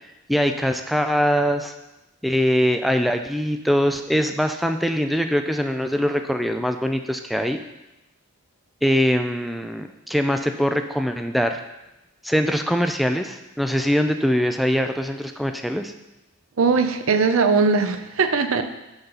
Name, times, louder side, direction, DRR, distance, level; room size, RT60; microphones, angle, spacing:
voice 1, 0.3-1.7 2.2-7.6 8.8-11.6 12.2-15.9, equal, ahead, 6 dB, 0.3 m, -22 dB
voice 2, 16.6-18.6, right 4 dB, 70° right, 8 dB, 0.6 m, -19 dB
7.9 x 5.7 x 3.9 m, 0.97 s
head